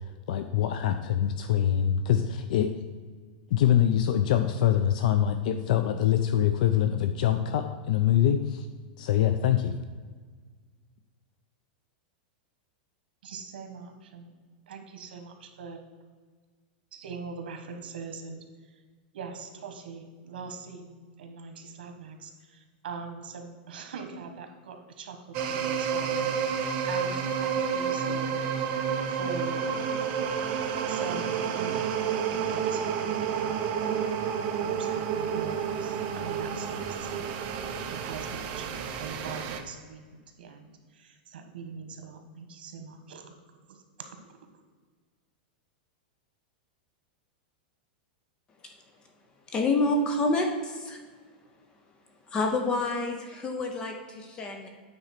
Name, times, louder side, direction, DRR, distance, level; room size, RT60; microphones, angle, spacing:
voice 1, 0.3-2.7 3.5-8.7 9.0-9.7, left 10 dB, 55° left, 9 dB, 0.4 m, -24 dB
voice 2, 13.2-14.3 14.7-15.8 16.9-18.4 19.1-28.7 29.1-29.7 30.9-31.9 32.3-34.1 34.6-43.3 43.7-43.8 44.1-44.4, right 5 dB, 80° right, 6 dB, 1.4 m, -42 dB
sound 1, 25.3-39.6, right 7 dB, 30° right, 0.7 m, -30 dB
voice 3, 49.5-51.0 52.3-54.7, left 2 dB, 15° left, 4 dB, 0.6 m, -28 dB
8.8 x 4.0 x 5.8 m, 1.5 s
supercardioid pair, 170°, 5 cm